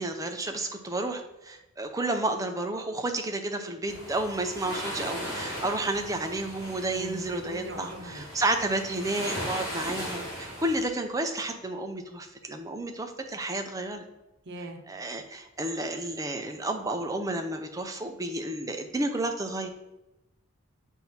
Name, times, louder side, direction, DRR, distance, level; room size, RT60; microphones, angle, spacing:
voice 1, 0.0-14.0 14.9-19.7, right 2 dB, 15° right, 4 dB, 0.5 m, -31 dB
sound 1, 3.9-10.8, equal, 15° left, 2.4 m, -37 dB
voice 2, 6.9-8.3 14.4-14.8, right 1 dB, 55° right, 4 dB, 0.8 m, -40 dB
7.5 x 2.7 x 5.9 m, 0.95 s
head